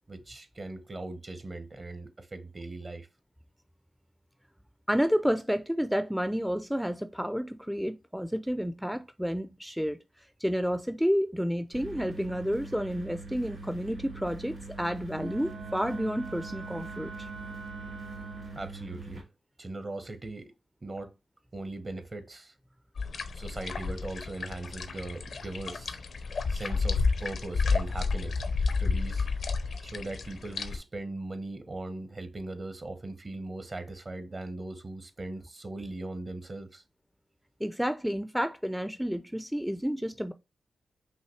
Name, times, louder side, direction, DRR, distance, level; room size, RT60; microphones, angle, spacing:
voice 1, 0.1-3.1 18.5-19.3 19.6-20.5 20.8-21.1 21.5-22.5 23.3-26.0 26.5-28.4 28.8-29.3 29.8-36.8, right 2 dB, 45° right, 0.9 m, -39 dB
voice 2, 4.9-10.0 10.4-17.3 37.6-40.3, equal, ahead, 0.4 m, -30 dB
sound 1, 11.7-19.2, right 3 dB, 90° right, 2.7 m, -43 dB
Wind instrument woodwind instrument, 15.1-18.7, right 5 dB, 75° right, 1.0 m, -44 dB
sound 2, 23.0-30.8, left 4 dB, 70° left, 0.6 m, -31 dB
5.6 x 2.7 x 3.1 m
supercardioid pair, 45°, 0 cm